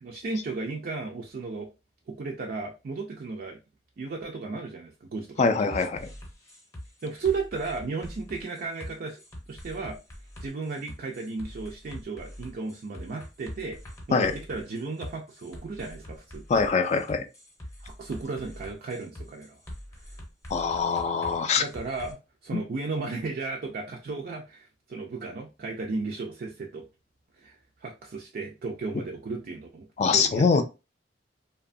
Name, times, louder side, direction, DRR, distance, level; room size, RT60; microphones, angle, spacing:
voice 1, 0.0-1.7 2.1-3.6 4.0-5.6 7.0-9.2 9.5-10.0 10.4-13.8 14.1-16.4 17.8-19.6 21.6-22.2 22.4-26.9 27.4-30.6, right 4 dB, 55° right, 0.4 m, -34 dB
voice 2, 5.4-6.1 14.1-14.4 16.5-17.2 20.5-21.6 22.5-22.6 30.0-30.6, left 5 dB, 40° left, 0.3 m, -23 dB
sound 1, 5.7-22.1, equal, 15° left, 0.7 m, -44 dB
2.8 x 2.2 x 2.5 m
head